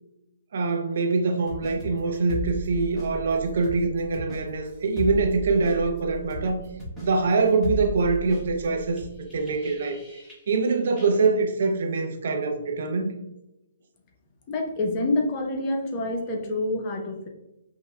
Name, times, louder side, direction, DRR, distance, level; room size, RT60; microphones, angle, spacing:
voice 1, 0.5-6.6 7.0-9.0 9.3-10.0 10.5-13.1, right 4 dB, 60° right, 4 dB, 0.5 m, -24 dB
sound 1, 1.5-10.7 11.0-11.1, right 1 dB, 5° left, 1.0 m, -37 dB
voice 2, 14.5-17.3, left 2 dB, 30° left, 2 dB, 0.6 m, -27 dB
5.4 x 2.1 x 2.2 m, 0.93 s
hypercardioid pair, 140°, 0 cm